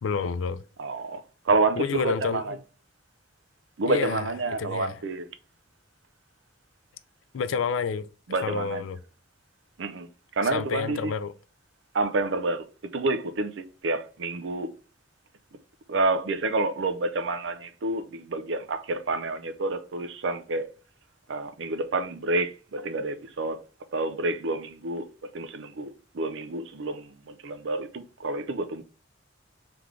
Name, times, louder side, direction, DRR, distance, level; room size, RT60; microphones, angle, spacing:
voice 1, 0.0-0.6 1.8-2.6 3.9-4.3 4.6-5.0 7.3-8.1 8.4-9.0 10.4-11.3, left 5 dB, 80° left, 0.4 m, -29 dB
voice 2, 0.8-2.6 3.8-5.2 8.3-8.8 9.8-10.1 10.4-11.1 11.9-12.7 12.9-14.7 15.9-20.7 21.3-23.6 23.9-25.1 25.3-25.9 26.1-28.8, right 2 dB, 70° right, 0.5 m, -28 dB
3.4 x 3.2 x 3.7 m
head